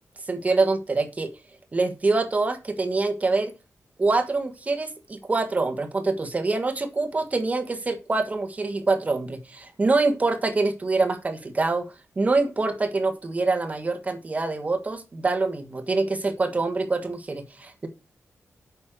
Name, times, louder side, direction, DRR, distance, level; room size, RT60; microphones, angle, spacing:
voice 1, 0.3-1.3 1.7-3.5 4.0-11.8 12.2-17.9, right 3 dB, 30° right, 7 dB, 1.5 m, -25 dB
8.5 x 6.4 x 6.3 m, 0.28 s
wide cardioid pair, 175°, 5 cm